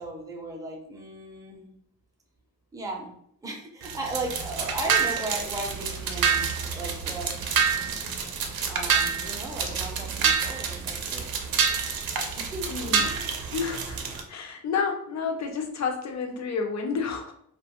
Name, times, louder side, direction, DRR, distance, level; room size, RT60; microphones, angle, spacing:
voice 1, 0.0-1.7 2.7-3.1 3.4-7.6 8.7-11.2 12.4-13.1, right 2 dB, 10° right, 0 dB, 0.4 m, -36 dB
sound 1, 3.8-14.2, right 6 dB, 80° right, 0.5 m, -28 dB
voice 2, 12.7-13.1 13.5-14.0 14.3-17.3, left 5 dB, 50° left, 3 dB, 0.5 m, -30 dB
2.5 x 2.2 x 2.8 m, 0.68 s
wide cardioid pair, 160°, 36 cm